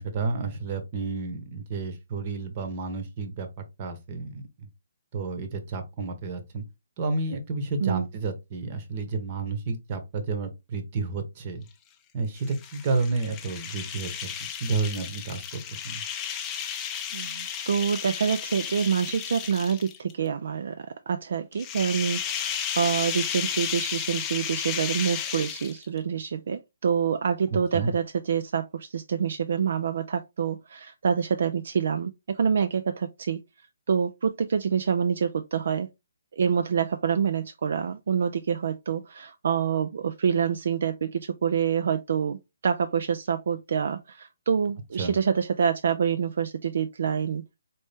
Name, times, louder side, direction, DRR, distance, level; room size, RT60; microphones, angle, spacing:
voice 1, 0.0-3.5 3.8-4.7 5.1-6.6 7.0-11.6 12.1-14.3 14.6-16.0 27.7-27.9 45.0-45.2, right 3 dB, 30° right, 1.0 m, -31 dB
sound 1, 12.4-20.1 21.5-26.0, left 8 dB, 15° left, 0.5 m, -33 dB
voice 2, 17.1-33.4 33.9-35.9 36.3-47.4, right 7 dB, 60° right, 0.4 m, -27 dB
4.2 x 3.1 x 3.4 m
hypercardioid pair, 160°, 0 cm